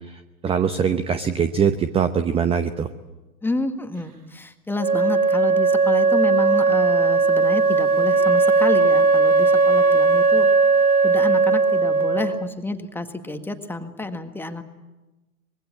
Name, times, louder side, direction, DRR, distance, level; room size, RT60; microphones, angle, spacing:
voice 1, 0.4-2.9, right 7 dB, 15° right, 11 dB, 0.8 m, -22 dB
voice 2, 3.4-10.5 11.0-14.6, left 2 dB, 5° left, 7 dB, 1.7 m, -29 dB
Wind instrument woodwind instrument, 4.8-12.5, right 4 dB, 90° right, 1.0 m, -18 dB
25.5 x 22.0 x 8.6 m, 1.1 s
figure-of-eight pair, 100°, 43 cm